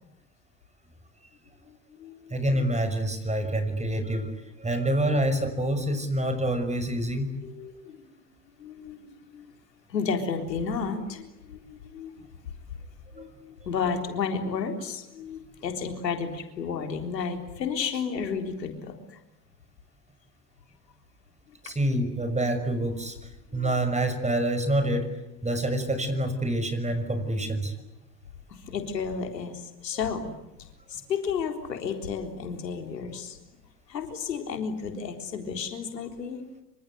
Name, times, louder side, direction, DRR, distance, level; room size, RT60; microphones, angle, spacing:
voice 1, 1.7-2.7 7.4-8.2 8.6-9.5 9.9-12.3 13.1-19.2 23.5-23.7 28.5-30.4 30.9-33.4 33.9-36.4, left 6 dB, 90° left, 5 dB, 3.9 m, -32 dB
voice 2, 2.3-7.3 13.2-13.3 21.6-25.1 25.4-27.7, right 1 dB, 15° right, 8 dB, 6.3 m, -27 dB
27.5 x 25.5 x 8.2 m, 0.91 s
hypercardioid pair, 80°, 49 cm